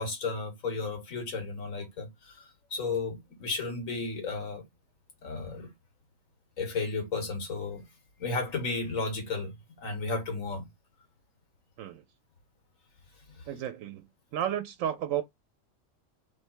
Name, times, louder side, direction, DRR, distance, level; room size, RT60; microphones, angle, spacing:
voice 1, 0.0-4.7 5.2-5.7 6.6-7.8 8.2-9.5 9.8-10.7 13.4-13.5, left 3 dB, 85° left, 1.8 m, -33 dB
voice 2, 13.5-14.0 14.3-15.2, right 10 dB, 85° right, 1.0 m, -32 dB
3.3 x 3.3 x 4.5 m
omnidirectional pair, 1.4 m